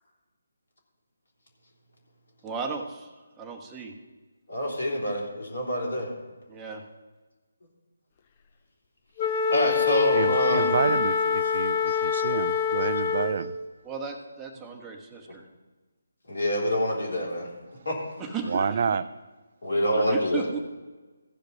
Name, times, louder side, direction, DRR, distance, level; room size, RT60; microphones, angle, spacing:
voice 1, 2.4-3.9 6.5-6.8 9.6-9.7 13.8-15.4 18.2-19.0 20.1-20.6, right 5 dB, 10° right, 1 dB, 1.1 m, -35 dB
voice 2, 4.5-6.1 9.5-10.8 11.9-12.3 16.3-17.5 17.8-18.0 19.6-20.4, equal, 70° left, -2 dB, 3.4 m, -27 dB
Wind instrument woodwind instrument, 9.2-13.5, left 6 dB, 30° left, 0.6 m, -25 dB
voice 3, 10.1-13.6 18.4-19.0, right 6 dB, 50° right, 15 dB, 0.4 m, -29 dB
15.5 x 5.1 x 5.3 m, 1.2 s
figure-of-eight pair, 150°, 0 cm